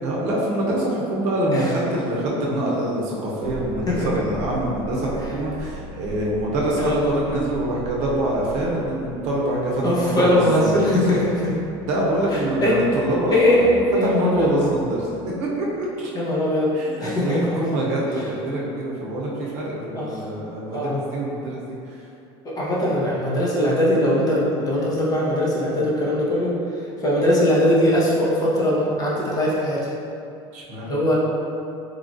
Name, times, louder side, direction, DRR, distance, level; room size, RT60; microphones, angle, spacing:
voice 1, 0.0-10.8 11.8-16.1 16.7-22.1 30.5-31.0, right 1 dB, 60° right, -4 dB, 0.7 m, -25 dB
sound 1, 2.6-16.0, equal, 20° right, 0.7 m, -39 dB
voice 2, 9.8-11.6 12.3-12.8 13.3-14.5 16.1-17.6 20.0-20.2 20.7-21.0 22.4-26.5 27.0-29.9 30.9-31.2, left 1 dB, 25° left, -6 dB, 0.7 m, -21 dB
3.1 x 2.4 x 2.5 m, 2.6 s
supercardioid pair, 100°, 14 cm